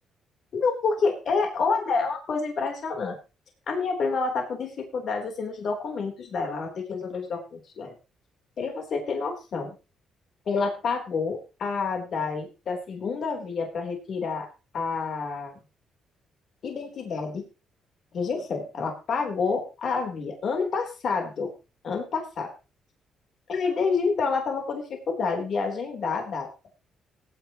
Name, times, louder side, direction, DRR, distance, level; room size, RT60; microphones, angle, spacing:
voice 1, 0.5-3.2 3.7-7.9 8.6-9.8 10.5-14.5 14.7-15.5 16.6-17.5 18.1-21.5 21.8-22.5 23.5-26.5, left 4 dB, 60° left, 3 dB, 3.5 m, -28 dB
19.0 x 9.6 x 3.0 m, 0.30 s
cardioid pair, 90°, 0 cm